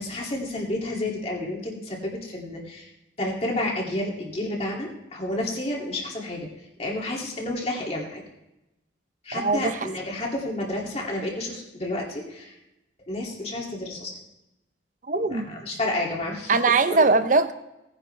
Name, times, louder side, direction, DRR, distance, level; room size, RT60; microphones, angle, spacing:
voice 1, 0.0-2.9 3.2-6.5 6.8-8.2 9.2-12.5 13.1-14.1 15.1-16.6 16.9-17.1, left 1 dB, 35° left, -2 dB, 2.6 m, -30 dB
voice 2, 9.3-9.9 15.1-15.6 16.5-17.5, right 3 dB, 45° right, 10 dB, 0.7 m, -21 dB
18.0 x 10.0 x 3.4 m, 0.92 s
head